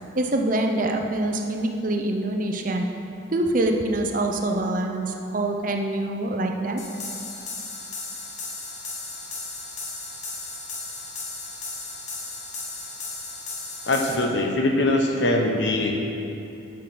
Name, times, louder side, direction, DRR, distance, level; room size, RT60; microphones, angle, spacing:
voice 1, 0.1-2.9 3.3-6.8, right 1 dB, 45° right, 3 dB, 0.7 m, -25 dB
sound 1, 6.8-14.2, left 3 dB, 35° left, 1.2 m, -35 dB
voice 2, 13.9-16.0, left 1 dB, 65° left, 2 dB, 1.1 m, -22 dB
11.5 x 5.0 x 6.1 m, 2.7 s
head